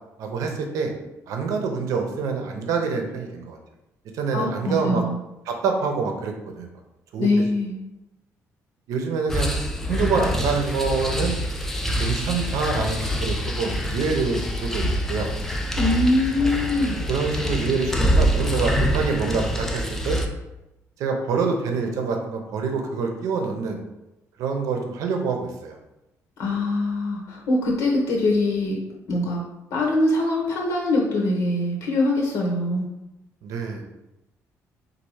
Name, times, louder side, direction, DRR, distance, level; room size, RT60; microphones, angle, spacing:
voice 1, 0.2-0.9 1.3-3.6 4.1-5.0 5.5-6.7 7.1-7.5 8.9-9.5 9.8-11.4 12.0-15.3 17.1-20.2 21.0-23.8 24.4-25.8 33.4-33.8, right 5 dB, 75° right, 3 dB, 0.7 m, -26 dB
voice 2, 4.3-5.2 7.2-7.7 15.8-16.9 26.4-28.8 29.1-29.4 29.7-32.9, left 2 dB, 65° left, -1 dB, 0.9 m, -23 dB
sound 1, 9.3-20.3, equal, 5° left, 0.4 m, -25 dB
4.1 x 2.6 x 4.7 m, 0.95 s
cardioid pair, 175°, 6 cm